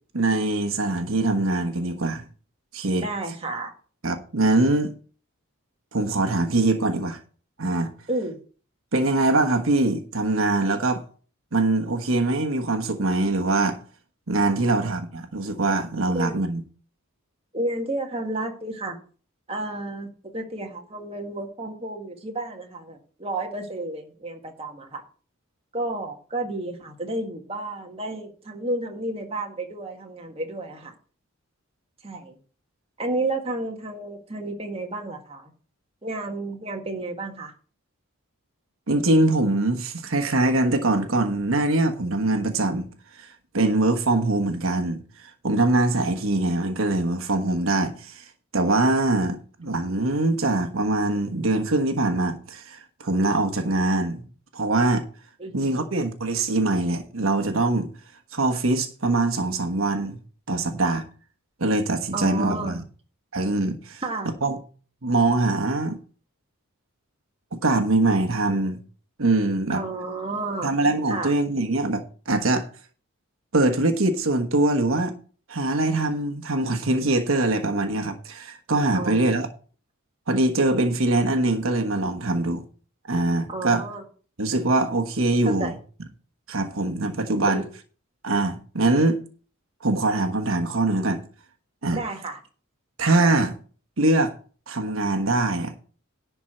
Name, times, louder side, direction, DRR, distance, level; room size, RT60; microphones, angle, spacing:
voice 1, 0.1-2.2 2.7-3.0 4.0-4.9 5.9-7.2 7.6-7.9 8.9-11.0 11.5-13.8 14.3-16.6 38.9-42.9 43.2-48.2 48.5-54.2 54.5-55.1 55.5-57.9 58.3-60.2 60.5-61.0 61.6-62.8 63.3-64.0 64.4-64.6 65.0-66.0 67.5-68.8 69.2-69.8 70.6-72.7 73.5-75.1 75.5-79.5 80.3-82.6 83.1-83.8 84.4-85.7 86.5-87.6 88.2-89.2 89.8-91.2 91.8-92.0 93.0-93.5 94.0-94.3 94.7-95.7, right 2 dB, 75° right, 1.3 m, -23 dB
voice 2, 3.0-3.7 8.1-8.4 14.5-14.8 16.1-16.4 17.5-19.0 19.5-25.0 25.7-30.9 32.0-32.4 33.0-35.5 36.0-37.5 55.4-55.9 62.1-62.8 64.0-64.3 69.7-70.7 71.1-71.3 78.9-79.3 83.5-84.0 85.4-85.8 87.5-87.7 91.9-92.4, right 2 dB, 30° right, 1.7 m, -31 dB
11.0 x 4.6 x 7.7 m
head